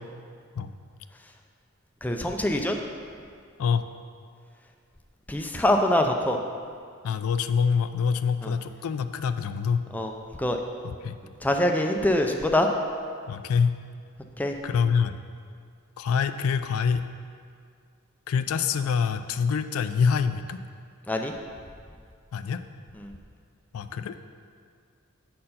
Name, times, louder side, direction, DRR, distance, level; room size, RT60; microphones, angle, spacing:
voice 1, 2.0-2.8 5.3-6.4 8.4-8.5 9.9-10.1 10.4-10.6 11.4-12.7 14.4-14.5 21.1-21.3 23.0-23.1, left 1 dB, 5° left, 3 dB, 0.4 m, -24 dB
voice 2, 7.0-9.8 10.8-11.2 13.3-13.8 14.6-15.2 16.0-17.0 18.3-20.6 22.3-22.6 23.7-24.2, left 6 dB, 75° left, 10 dB, 0.3 m, -25 dB
7.6 x 4.4 x 5.5 m, 2.2 s
head